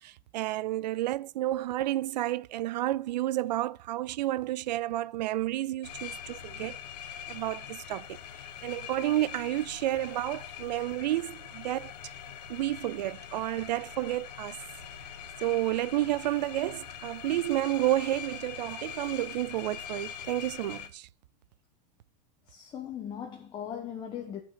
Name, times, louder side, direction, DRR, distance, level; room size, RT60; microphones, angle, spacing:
voice 1, 0.0-6.8 7.3-8.2 8.6-11.9 12.5-14.6 15.4-21.1, right 15 dB, 85° right, 0.5 m, -31 dB
sound 1, 5.8-20.9, left 9 dB, 70° left, 1.4 m, -43 dB
voice 2, 22.5-24.4, left 9 dB, 20° left, 1.2 m, -39 dB
10.5 x 5.9 x 5.1 m
supercardioid pair, 160°, 21 cm